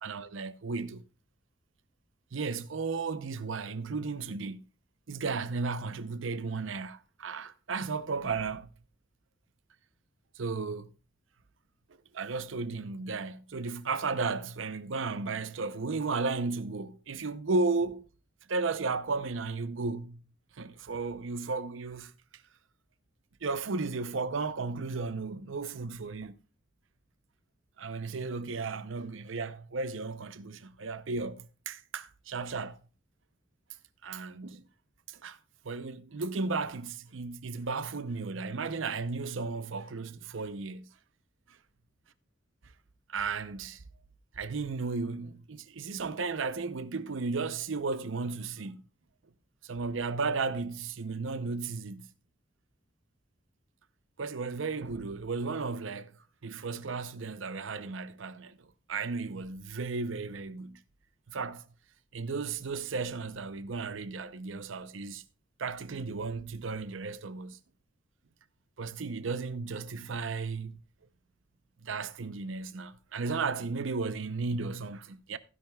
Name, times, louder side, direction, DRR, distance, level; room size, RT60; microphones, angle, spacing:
voice 1, 0.0-1.0 2.3-4.7 5.1-8.7 10.4-10.9 12.1-18.1 18.5-20.2 20.6-22.1 23.4-26.3 27.8-32.8 34.0-34.6 35.1-35.4 35.6-40.9 43.1-43.8 44.4-48.8 49.6-52.1 54.2-56.1 56.4-58.6 58.9-60.8 61.3-61.6 62.1-65.2 65.6-67.6 68.8-70.8 71.8-75.4, right 4 dB, 90° right, 0.7 m, -34 dB
15.5 x 10.5 x 2.3 m
head